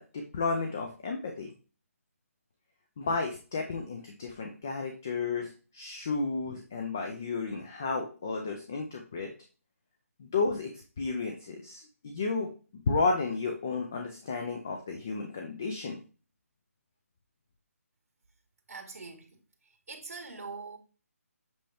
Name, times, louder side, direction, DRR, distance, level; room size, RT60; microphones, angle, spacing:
voice 1, 0.0-1.5 3.0-9.3 10.2-10.7 11.0-16.0, left 4 dB, 10° left, 0.3 m, -32 dB
voice 2, 18.7-19.4 19.9-20.8, right 4 dB, 80° right, 1.8 m, -42 dB
7.7 x 4.3 x 3.4 m
hypercardioid pair, 180°, 8 cm